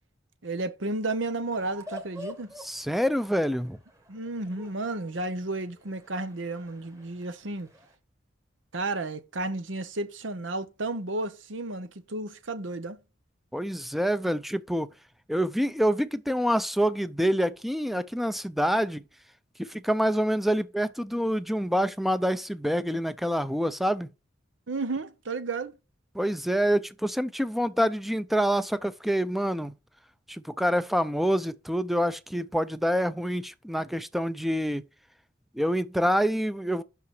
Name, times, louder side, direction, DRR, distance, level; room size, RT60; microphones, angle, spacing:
voice 1, 0.4-2.5 4.1-7.7 8.7-13.0 24.7-25.8, right 2 dB, 75° right, 0.9 m, -32 dB
sound 1, 1.5-7.9, right 1 dB, 15° right, 1.7 m, -47 dB
voice 2, 2.6-3.8 13.5-14.9 15.3-19.0 19.6-24.1 26.1-29.7 30.3-34.8 35.6-36.8, equal, ahead, 0.5 m, -26 dB
6.0 x 5.6 x 5.9 m
head